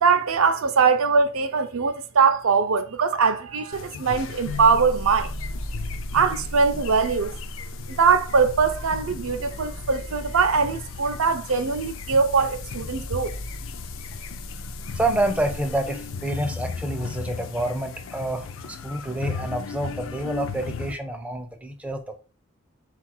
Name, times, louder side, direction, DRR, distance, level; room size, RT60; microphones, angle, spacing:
voice 1, 0.0-5.3 6.1-7.3 8.0-13.3, right 5 dB, 65° right, 0.5 m, -21 dB
sound 1, 3.7-20.9, left 5 dB, 60° left, 0.4 m, -37 dB
sound 2, 4.4-16.5, equal, 75° left, 0.7 m, -37 dB
voice 2, 14.9-22.2, right 1 dB, 5° right, 0.4 m, -28 dB
3.9 x 2.4 x 4.3 m
head